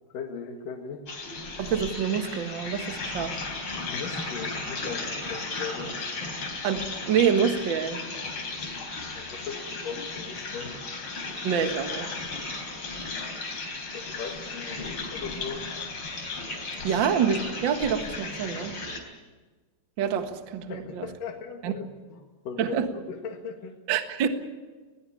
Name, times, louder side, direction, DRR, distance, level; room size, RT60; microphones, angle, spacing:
voice 1, 0.1-1.0 3.8-5.9 9.1-10.7 13.9-15.7 20.7-23.7, left 5 dB, 60° left, 1 dB, 3.4 m, -38 dB
sound 1, 1.1-19.0, left 3 dB, 35° left, 4.4 m, -35 dB
voice 2, 1.6-3.3 6.6-8.0 11.4-12.1 16.8-18.8 20.0-21.1 21.6-21.7 22.6-22.9 23.9-24.3, right 7 dB, 60° right, 7 dB, 1.2 m, -26 dB
21.0 x 19.5 x 8.6 m, 1.3 s
omnidirectional pair, 4.6 m